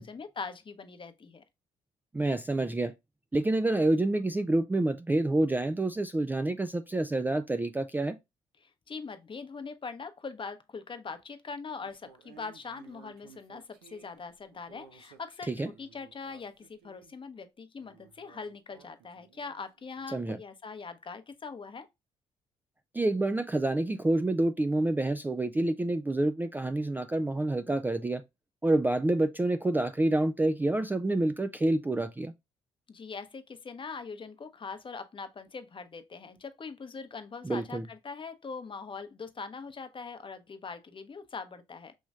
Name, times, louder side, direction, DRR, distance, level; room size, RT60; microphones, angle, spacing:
voice 1, 0.0-1.4 8.6-21.9 32.9-41.9, left 4 dB, 35° left, 0.8 m, -42 dB
voice 2, 2.1-2.9 3.3-8.2 15.5-15.7 20.1-20.4 22.9-28.2 28.6-32.3 37.4-37.8, right 2 dB, 10° right, 0.4 m, -28 dB
sound 1, 11.8-17.1 17.8-20.1, right 8 dB, 80° right, 0.7 m, -57 dB
6.2 x 3.0 x 2.4 m
hypercardioid pair, 50°, 15 cm